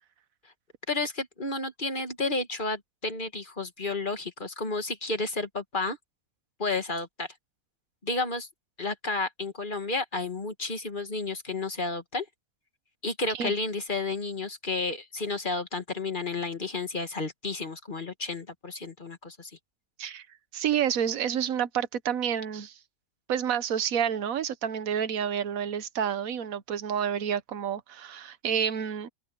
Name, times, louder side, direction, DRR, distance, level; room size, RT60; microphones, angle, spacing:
voice 1, 0.9-6.0 6.6-7.3 8.0-8.5 8.8-12.3 13.0-19.5, left 3 dB, 35° left, 1.9 m, -31 dB
voice 2, 20.5-22.8 23.3-29.1, right 8 dB, 80° right, 1.3 m, -29 dB
open air
omnidirectional pair, 1.4 m